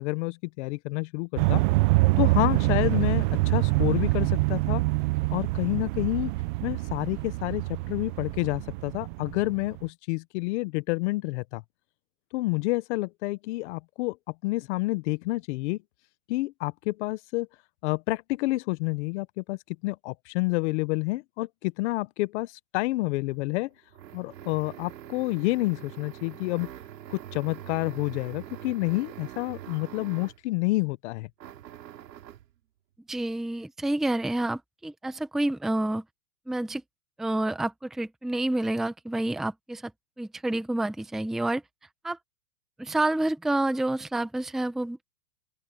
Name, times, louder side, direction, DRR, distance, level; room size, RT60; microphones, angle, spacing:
voice 1, 0.0-1.6 2.2-4.8 5.3-6.3 6.6-11.6 12.3-14.2 14.4-15.8 16.3-17.5 17.8-23.7 24.1-26.7 27.1-31.3, left 21 dB, 45° left, 1.2 m, -29 dB
sound 1, 1.4-9.8, right 21 dB, 30° right, 0.7 m, -25 dB
sound 2, 23.3-30.5 31.4-32.5, right 12 dB, 75° right, 3.3 m, -44 dB
voice 2, 33.1-36.0 36.5-36.8 37.2-39.9 40.2-41.6 42.0-42.2 42.8-45.1, right 1 dB, ahead, 0.9 m, -28 dB
open air
hypercardioid pair, 145°, 49 cm